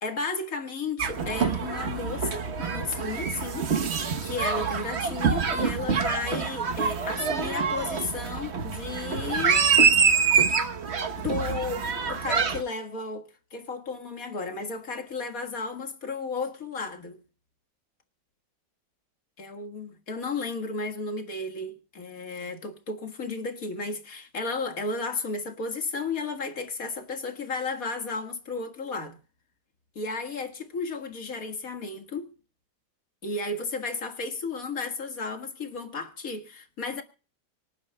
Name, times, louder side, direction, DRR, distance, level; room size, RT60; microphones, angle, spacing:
voice 1, 0.0-3.7 4.2-9.7 10.2-10.4 11.2-17.2 19.4-29.2 30.0-32.3 33.2-37.0, left 3 dB, 50° left, 2.1 m, -33 dB
sound 1, 1.0-12.6, right 6 dB, 45° right, 1.2 m, -26 dB
25.0 x 10.5 x 2.2 m
omnidirectional pair, 1.9 m